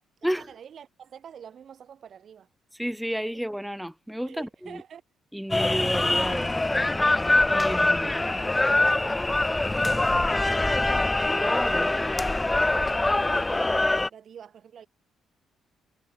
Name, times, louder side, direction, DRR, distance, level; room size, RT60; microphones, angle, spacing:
voice 1, 0.0-2.5 3.3-3.4 4.2-5.0 8.0-12.1 13.4-14.9, right 8 dB, 55° right, 5.5 m, -47 dB
voice 2, 2.8-4.8 5.3-6.5 7.5-8.2 11.4-11.9, equal, ahead, 1.5 m, -31 dB
sound 1, 5.5-14.1, left 2 dB, 15° left, 0.5 m, -23 dB
cardioid pair, 90°, 0 cm